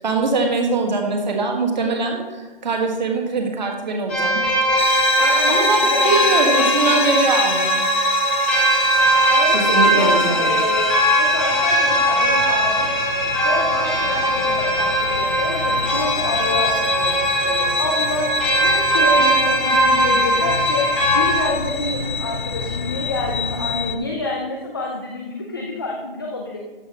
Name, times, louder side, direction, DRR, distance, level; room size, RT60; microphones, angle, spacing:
voice 1, 0.0-4.4 5.5-7.8 9.5-10.6, right 3 dB, 50° right, 2 dB, 1.7 m, -22 dB
sound 1, 4.1-21.4, right 1 dB, 5° left, 1.0 m, -20 dB
sound 2, 4.8-24.0, left 6 dB, 55° left, 0.8 m, -26 dB
voice 2, 5.2-7.2 9.3-10.9 11.2-12.9 13.4-26.6, left 2 dB, 25° left, 0 dB, 0.6 m, -27 dB
13.5 x 7.9 x 3.0 m, 1.3 s
hypercardioid pair, 180°, 29 cm